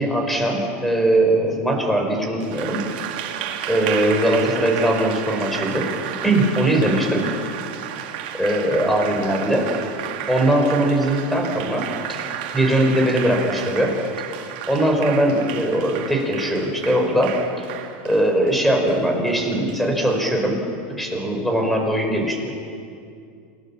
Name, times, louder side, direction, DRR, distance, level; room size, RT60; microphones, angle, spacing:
voice 1, 0.0-2.8 3.7-5.9 6.2-7.2 8.4-9.6 10.3-13.9 14.7-17.4 18.0-20.6 20.9-22.5, right 1 dB, ahead, 2 dB, 5.2 m, -20 dB
Applause, 2.4-20.2, right 10 dB, 70° right, 2.5 m, -32 dB
28.5 x 19.0 x 7.3 m, 2.4 s
supercardioid pair, 130°, 5 cm